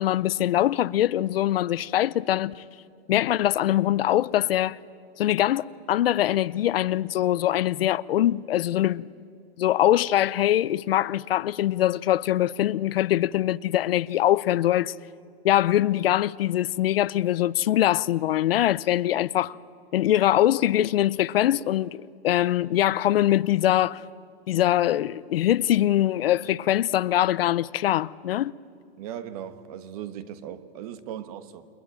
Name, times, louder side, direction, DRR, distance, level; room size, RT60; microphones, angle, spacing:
voice 1, 0.0-2.6 3.1-4.8 5.2-9.1 9.6-14.9 15.4-19.6 19.9-24.0 24.5-28.5, left 13 dB, 70° left, 0.7 m, -23 dB
voice 2, 29.0-31.7, right 10 dB, 40° right, 1.3 m, -38 dB
29.5 x 21.5 x 9.0 m
supercardioid pair, 165°, 30 cm